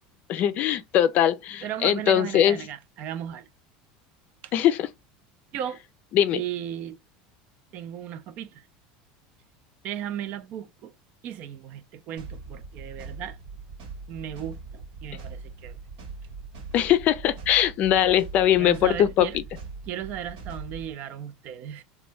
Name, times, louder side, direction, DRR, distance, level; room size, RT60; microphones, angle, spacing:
voice 1, 0.3-2.6 4.5-4.9 6.1-6.4 16.7-19.3, left 11 dB, 45° left, 0.4 m, -21 dB
voice 2, 1.6-3.5 4.4-4.5 5.5-5.8 6.3-7.0 7.7-8.6 9.8-10.9 11.2-13.4 14.1-15.8 18.6-19.4 19.9-21.8, right 10 dB, 50° right, 0.5 m, -35 dB
sound 1, 12.2-20.9, right 4 dB, 75° right, 1.3 m, -41 dB
3.0 x 2.2 x 3.2 m
supercardioid pair, 130°, 4 cm